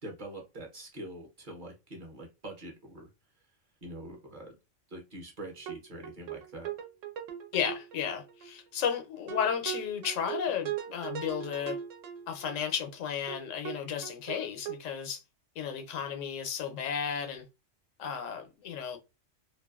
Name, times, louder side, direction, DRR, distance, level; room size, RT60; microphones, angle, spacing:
voice 1, 0.0-3.1 3.8-4.6 4.9-6.7, right 1 dB, 50° right, 0.7 m, -44 dB
sound 1, 5.7-5.8 6.0-8.5 8.8-8.9 9.3-12.9 13.3-13.4 13.6-13.8 14.0-14.8, right 10 dB, 85° right, 1.0 m, -39 dB
voice 2, 7.5-11.8 12.3-15.2 15.6-17.4 18.0-19.0, left 8 dB, 90° left, 1.0 m, -33 dB
2.5 x 2.3 x 2.3 m
omnidirectional pair, 1.3 m